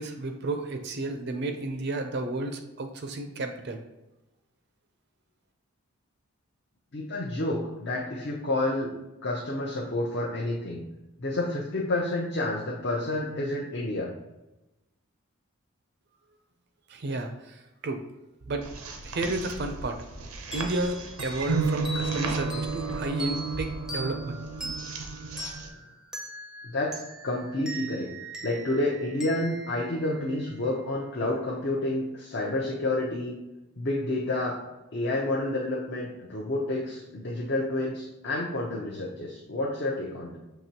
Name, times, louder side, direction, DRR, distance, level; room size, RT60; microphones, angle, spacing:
voice 1, 0.0-3.8 16.9-18.0 18.5-18.7 19.0-20.0 20.5-24.4, right 2 dB, 50° right, 6 dB, 0.4 m, -32 dB
voice 2, 6.9-8.9 9.2-10.8 11.2-14.1 26.6-28.1 28.4-33.3 33.8-34.6 34.9-40.4, left 2 dB, 50° left, -3 dB, 0.6 m, -29 dB
sound 1, 18.4-25.7, right 4 dB, 90° right, 0.6 m, -33 dB
sound 2, 20.5-30.8, right 1 dB, 5° right, 0.5 m, -41 dB
5.8 x 2.9 x 2.8 m, 1.0 s
head